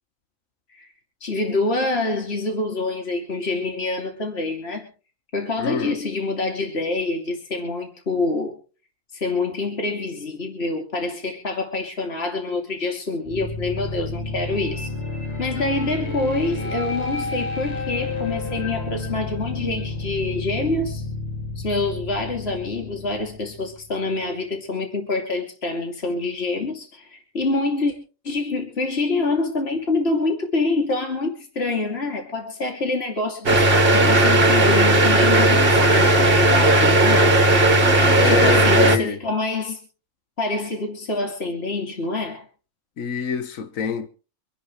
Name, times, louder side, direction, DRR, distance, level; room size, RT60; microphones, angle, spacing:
voice 1, 1.2-4.9 5.3-8.6 9.1-14.9 15.4-21.0 21.6-27.9 28.2-37.3 38.2-39.8 40.4-42.5, left 3 dB, 50° left, 3.1 m, -26 dB
voice 2, 5.6-6.0 38.1-39.2 43.0-44.1, left 7 dB, 80° left, 1.7 m, -26 dB
sound 1, 13.2-24.2, left 3 dB, 30° left, 2.0 m, -31 dB
sound 2, 33.5-39.0, right 1 dB, 45° right, 1.9 m, -16 dB
26.5 x 10.5 x 3.2 m
omnidirectional pair, 1.4 m